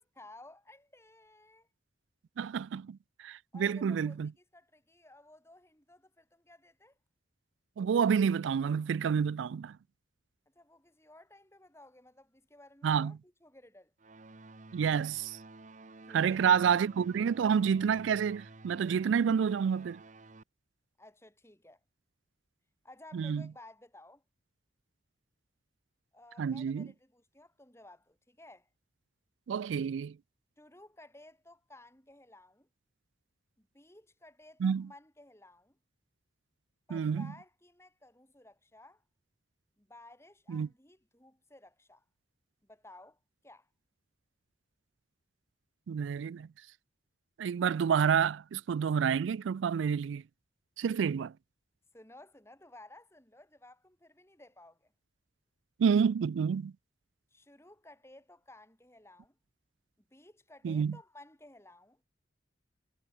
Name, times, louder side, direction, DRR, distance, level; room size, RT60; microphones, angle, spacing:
voice 1, 0.0-1.7 3.5-7.0 10.5-13.9 16.1-16.8 21.0-21.8 22.8-24.2 26.1-28.7 30.6-32.7 33.6-35.8 36.9-39.0 39.8-42.0 42.6-43.2 43.4-43.7 51.9-54.9 57.3-59.4 60.0-62.0, left 2 dB, 15° left, 5.1 m, -56 dB
voice 2, 2.4-4.3 7.8-9.8 12.8-13.2 14.7-15.4 16.1-20.0 23.1-23.5 26.4-26.9 29.5-30.2 34.6-34.9 36.9-37.3 40.5-40.7 45.9-46.5 47.4-50.2 50.8-51.3 55.8-56.7 60.6-61.0, right 7 dB, 90° right, 0.3 m, -29 dB
sound 1, 14.0-20.4, right 2 dB, 40° right, 1.0 m, -52 dB
head